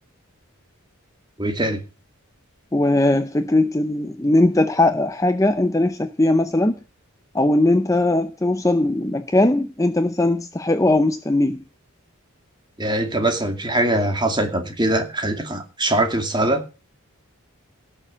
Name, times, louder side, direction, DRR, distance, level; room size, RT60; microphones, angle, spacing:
voice 1, 1.4-1.8 12.8-16.6, right 1 dB, 20° right, 2.3 m, -22 dB
voice 2, 2.7-6.8 7.3-11.6, left 2 dB, 15° left, 0.6 m, -19 dB
17.5 x 6.8 x 6.4 m
head